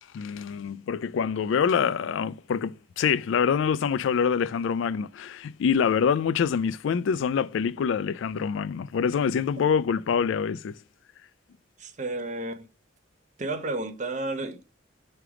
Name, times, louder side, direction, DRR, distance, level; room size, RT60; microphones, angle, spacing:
voice 1, 0.1-10.8, left 7 dB, 75° left, 0.3 m, -25 dB
voice 2, 11.8-12.6 13.4-14.7, right 2 dB, 40° right, 0.7 m, -32 dB
5.9 x 3.3 x 4.9 m
head